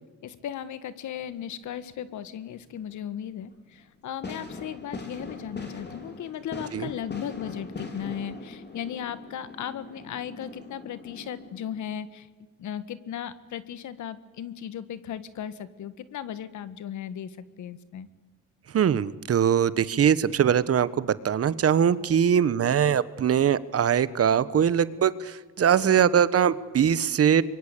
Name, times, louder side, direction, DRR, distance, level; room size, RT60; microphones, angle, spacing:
voice 1, 0.2-12.3 12.6-18.1, left 9 dB, 75° left, 14 dB, 1.7 m, -36 dB
sound 1, 1.1-1.8 2.1-2.9 3.5-3.6 4.2-11.9, left 3 dB, 35° left, 4.7 m, -41 dB
voice 2, 18.7-27.4, right 8 dB, 50° right, 16 dB, 1.2 m, -22 dB
25.5 x 23.0 x 8.5 m, 1.3 s
cardioid pair, 90°, 30 cm